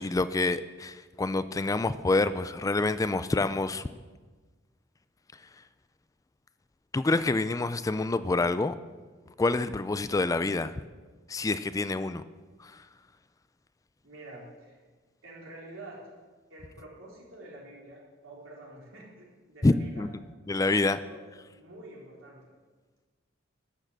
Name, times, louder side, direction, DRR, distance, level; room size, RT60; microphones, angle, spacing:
voice 1, 0.0-3.9 6.9-8.8 9.4-10.7 11.3-12.2 12.6-12.7 19.6-20.1 20.5-21.0, left 3 dB, 15° left, 13 dB, 0.3 m, -27 dB
voice 2, 14.0-14.8 15.2-16.0 16.5-20.1 20.7-21.3 21.5-22.6, right 2 dB, 90° right, -4 dB, 3.9 m, -48 dB
12.0 x 6.4 x 7.4 m, 1.3 s
head